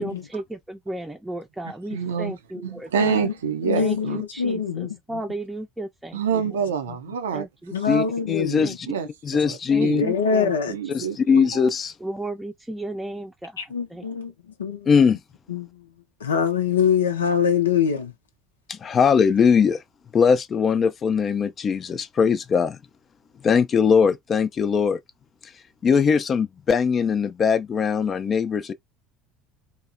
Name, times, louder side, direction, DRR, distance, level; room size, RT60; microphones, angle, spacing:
voice 1, 0.0-3.3 3.7-6.6 7.3-8.1 8.6-8.8 9.7-11.1 12.0-14.1, right 2 dB, 10° right, 0.6 m, -35 dB
voice 2, 1.9-2.3 2.6-4.2 6.1-7.5 8.9-10.0 10.7-11.6, right 7 dB, 85° right, 0.5 m, -27 dB
voice 3, 3.0-3.3 3.6-5.0 7.7-8.7 9.9-10.7 13.6-14.3 14.6-14.9 15.5-15.8 16.2-18.1, left 6 dB, 90° left, 0.5 m, -24 dB
voice 4, 7.9-8.9 9.2-10.0 10.9-12.0 14.9-15.2 18.7-19.8 20.1-22.8 23.4-25.0 25.4-28.7, left 6 dB, 35° left, 0.4 m, -21 dB
2.8 x 2.1 x 2.5 m
hypercardioid pair, 70°, 0 cm